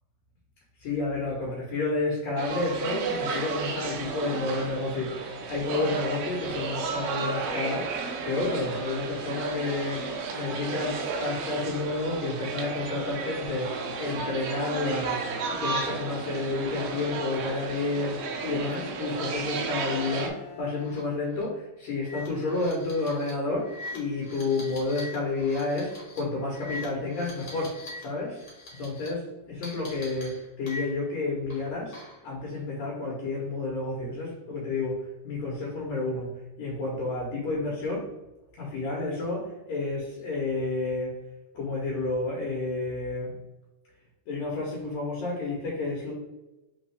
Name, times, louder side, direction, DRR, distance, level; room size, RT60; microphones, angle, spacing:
voice 1, 0.8-28.4 28.8-36.3 36.6-38.1 38.6-41.1 41.5-43.4 44.3-46.1, left 3 dB, 65° left, -3 dB, 2.1 m, -30 dB
sound 1, 2.4-20.3, right 4 dB, 85° right, 1.3 m, -33 dB
Bowed string instrument, 17.6-21.7, left 6 dB, 70° right, 1.7 m, -50 dB
sound 2, 20.8-21.0 21.3-21.4 22.0-28.0 28.3-29.1 29.6-31.1 31.5-32.3, left 2 dB, 45° left, 1.8 m, -43 dB
4.5 x 3.5 x 3.3 m, 1.0 s
omnidirectional pair, 3.6 m